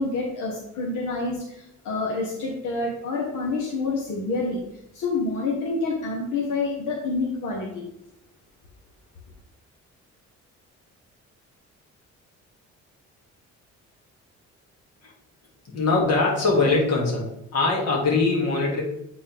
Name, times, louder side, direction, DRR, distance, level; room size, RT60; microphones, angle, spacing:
voice 1, 0.0-4.6 4.9-7.8, left 3 dB, 85° left, -2 dB, 1.4 m, -28 dB
voice 2, 15.7-18.8, left 3 dB, 55° left, -2 dB, 2.5 m, -22 dB
8.6 x 4.2 x 3.5 m, 0.79 s
cardioid pair, 90°, 30 cm